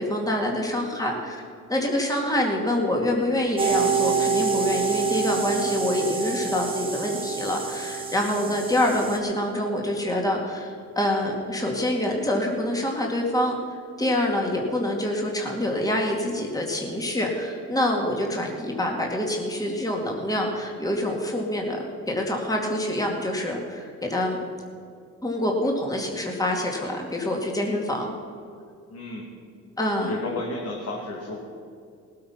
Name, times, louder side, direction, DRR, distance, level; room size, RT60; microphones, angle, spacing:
voice 1, 0.0-1.4 1.7-13.6 14.0-24.4 25.2-28.1 29.8-30.2, left 1 dB, 10° left, 0 dB, 2.3 m, -26 dB
sound 1, 3.6-9.2, right 5 dB, 20° right, 2.0 m, -26 dB
voice 2, 28.9-29.2 30.0-31.4, left 2 dB, 55° left, -3 dB, 2.4 m, -33 dB
18.5 x 8.7 x 5.9 m, 2.4 s
cardioid pair, 90°, 30 cm